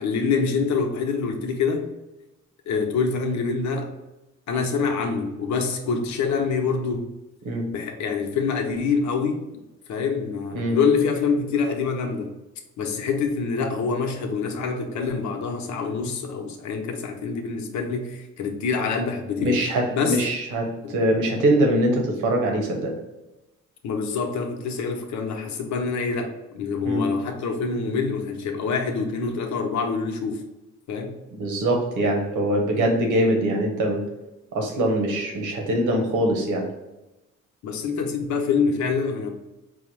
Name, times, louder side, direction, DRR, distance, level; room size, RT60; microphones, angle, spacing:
voice 1, 0.0-1.9 2.7-3.9 4.5-7.1 7.7-9.4 9.9-12.3 12.8-19.6 19.9-20.2 20.8-20.9 23.8-30.4 30.9-31.2 37.6-39.3, left 5 dB, 70° left, 3 dB, 0.8 m, -25 dB
voice 2, 19.4-22.9 26.8-27.0 31.4-34.0 34.5-36.7, right 1 dB, 80° right, 1 dB, 1.1 m, -23 dB
4.6 x 2.1 x 4.6 m, 0.99 s
cardioid pair, 90°, 30 cm